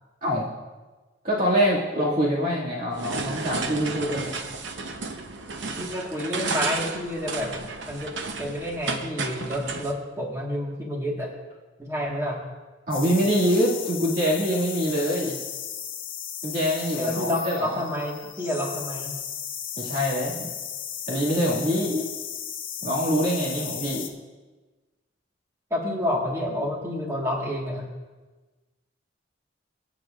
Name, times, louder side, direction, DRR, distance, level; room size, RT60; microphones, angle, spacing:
voice 1, 1.2-4.3 12.9-15.4 16.4-17.8 19.8-20.5 21.1-22.1 22.8-24.0, equal, 50° right, -6 dB, 2.2 m, -24 dB
sound 1, 2.9-9.9, right 4 dB, 75° right, 0.8 m, -32 dB
voice 2, 5.8-7.6 7.9-11.3 11.8-12.4 17.0-19.1 25.7-27.9, left 1 dB, 15° right, -2 dB, 1.6 m, -29 dB
sound 2, 12.9-24.1, left 9 dB, 50° left, 0.9 m, -35 dB
24.0 x 8.1 x 2.5 m, 1.2 s
head